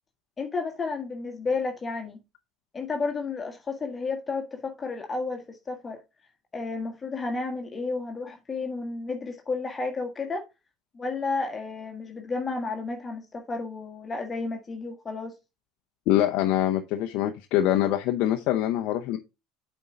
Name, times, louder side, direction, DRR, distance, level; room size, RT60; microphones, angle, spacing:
voice 1, 0.4-2.2 2.7-6.0 6.5-10.4 10.9-15.3, left 3 dB, 25° left, 1.5 m, -32 dB
voice 2, 16.1-19.2, left 12 dB, 65° left, 0.7 m, -24 dB
8.3 x 4.6 x 3.8 m
hypercardioid pair, 75°, 0 cm